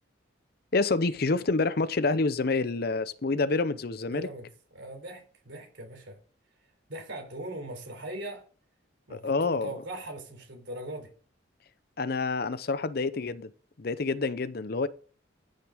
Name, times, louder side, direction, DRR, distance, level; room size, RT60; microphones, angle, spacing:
voice 1, 0.7-4.3 9.1-9.7 12.0-13.5 13.8-14.9, left 3 dB, 50° left, 0.6 m, -27 dB
voice 2, 4.1-4.5 4.7-6.2 6.9-8.5 9.1-11.1, right 1 dB, 65° right, 3.8 m, -40 dB
14.5 x 6.6 x 4.9 m
head